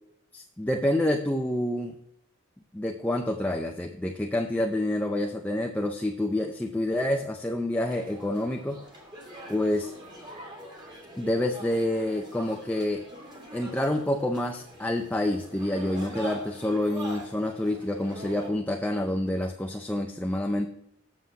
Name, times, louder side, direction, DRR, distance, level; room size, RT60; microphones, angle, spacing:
voice 1, 0.3-1.9 2.7-8.8 9.5-9.9 11.2-13.0 13.5-20.7, left 1 dB, 5° left, 3 dB, 0.5 m, -28 dB
sound 1, 7.8-18.5, right 1 dB, 20° right, 1.9 m, -44 dB
7.8 x 7.0 x 4.8 m, 0.76 s
head